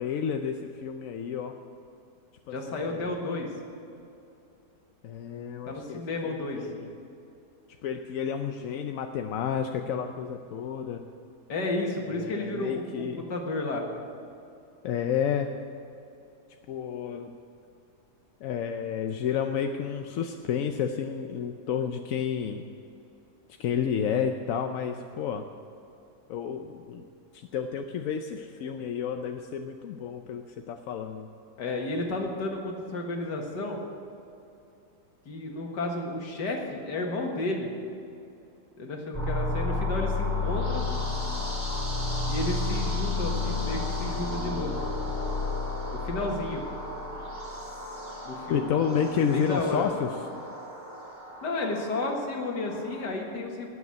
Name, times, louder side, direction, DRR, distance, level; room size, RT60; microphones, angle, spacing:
voice 1, 0.0-1.6 2.5-3.1 5.0-6.9 7.8-11.0 12.1-13.3 14.8-15.5 16.7-17.3 18.4-22.6 23.6-25.5 26.3-27.0 27.3-31.3 48.5-50.1, left 7 dB, 65° left, 5 dB, 0.9 m, -31 dB
voice 2, 2.5-3.5 5.7-6.7 11.5-13.0 13.3-13.8 31.6-33.8 35.3-37.7 38.8-40.9 42.2-44.8 45.9-46.7 48.2-48.7 49.2-49.9 51.4-53.7, left 2 dB, 85° left, 1 dB, 2.3 m, -32 dB
sound 1, 39.1-53.0, left 3 dB, 10° right, 3.0 m, -32 dB
18.5 x 7.1 x 8.5 m, 2.7 s
omnidirectional pair, 1.8 m